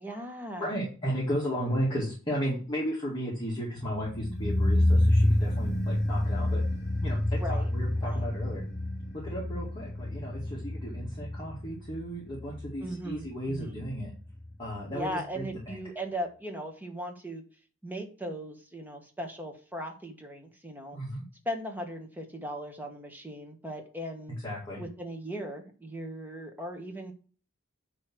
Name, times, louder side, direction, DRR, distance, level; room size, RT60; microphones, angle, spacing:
voice 1, 0.0-0.7 7.3-7.7 8.0-8.2 12.8-13.8 14.9-17.4 17.8-21.0 21.4-24.3 24.8-27.1, equal, 10° right, 4 dB, 1.3 m, -38 dB
voice 2, 0.6-6.6 7.0-8.6 9.2-14.1 14.6-15.8 20.9-21.2 24.4-24.8, equal, 20° left, -6 dB, 2.0 m, -34 dB
sound 1, 3.8-14.8 15.0-15.1, left 1 dB, 50° left, 2.9 m, -29 dB
9.6 x 3.2 x 6.0 m, 0.39 s
head